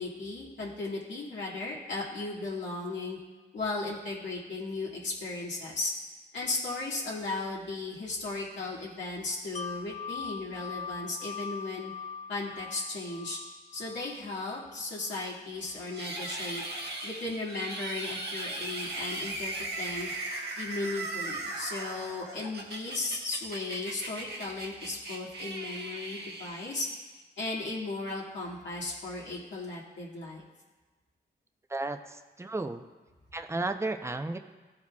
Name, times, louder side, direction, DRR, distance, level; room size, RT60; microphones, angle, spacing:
voice 1, 0.0-3.2 3.5-5.9 6.3-11.9 12.3-13.4 13.7-16.6 17.0-20.1 20.6-26.9 27.4-30.4, left 3 dB, 75° left, -5 dB, 1.9 m, -36 dB
Wind chime, 9.5-15.3 15.7-15.9, left 6 dB, 40° left, 0.5 m, -42 dB
sound 1, 15.9-27.2, right 2 dB, 60° right, 1.3 m, -38 dB
voice 2, 31.7-32.8 33.3-34.4, right 2 dB, 15° right, 7 dB, 0.6 m, -33 dB
14.0 x 4.9 x 2.3 m, 1.3 s
cardioid pair, 50°, 19 cm